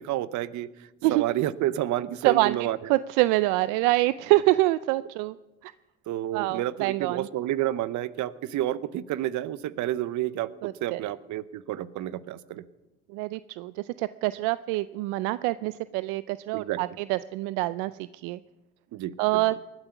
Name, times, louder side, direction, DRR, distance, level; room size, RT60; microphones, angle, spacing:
voice 1, 0.0-2.8 6.1-12.7 16.5-16.8 18.9-19.5, right 13 dB, 65° right, 17 dB, 0.9 m, -30 dB
voice 2, 2.2-2.6 2.9-5.4 5.6-5.7 6.3-7.3 10.6-11.0 13.1-18.4 19.2-19.5, right 19 dB, 85° right, 16 dB, 0.5 m, -25 dB
20.0 x 12.0 x 5.9 m, 1.1 s
supercardioid pair, 70°, 31 cm